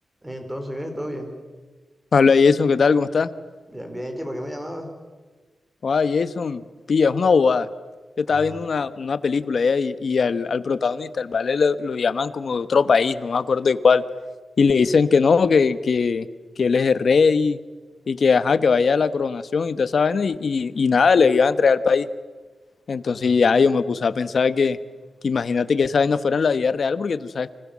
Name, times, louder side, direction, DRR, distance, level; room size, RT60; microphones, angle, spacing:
voice 1, 0.2-1.3 3.7-4.9 8.2-8.6 23.0-23.4, equal, 10° right, 5 dB, 4.9 m, -33 dB
voice 2, 2.1-3.3 5.8-6.6 6.9-7.7 8.2-14.0 14.6-16.3 16.6-17.6 18.1-22.1 22.9-24.8 25.2-27.5, left 5 dB, 55° left, 14 dB, 1.1 m, -20 dB
30.0 x 25.0 x 7.4 m, 1.3 s
wide cardioid pair, 130°, 0 cm